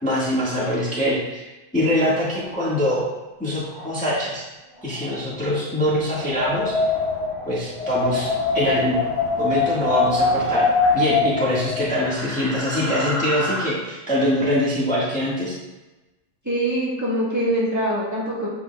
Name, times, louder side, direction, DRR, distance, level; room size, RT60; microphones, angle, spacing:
voice 1, 0.0-3.0 3.4-4.4 4.8-6.7 7.5-9.0 9.4-10.7 10.9-15.5, left 1 dB, 5° left, -8 dB, 1.3 m, -23 dB
sound 1, 2.3-2.9 3.6-3.9 4.7-5.2 6.1-6.5 7.0-7.6 7.9-8.3 9.3-9.7 10.1-11.1 12.0-13.6, left 1 dB, 60° left, 2.3 m, -34 dB
Wind, 6.1-12.2, left 3 dB, 25° left, 0.7 m, -23 dB
voice 2, 16.4-18.5, right 1 dB, 10° right, -7 dB, 1.4 m, -23 dB
7.9 x 5.6 x 2.2 m, 1.1 s
omnidirectional pair, 1.7 m